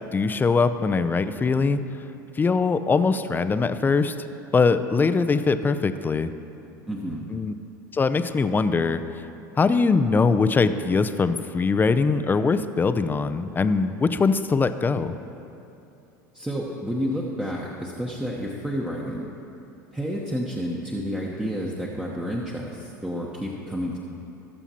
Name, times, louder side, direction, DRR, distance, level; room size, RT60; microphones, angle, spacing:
voice 1, 0.1-1.8 2.4-4.1 4.5-6.3 7.3-7.5 7.9-9.0 9.6-15.1, left 4 dB, 20° left, 11 dB, 0.5 m, -22 dB
voice 2, 6.9-7.3 16.3-19.3 19.9-24.0, equal, 5° right, -3 dB, 1.0 m, -30 dB
18.5 x 7.0 x 2.9 m, 2.8 s
hypercardioid pair, 80°, 10 cm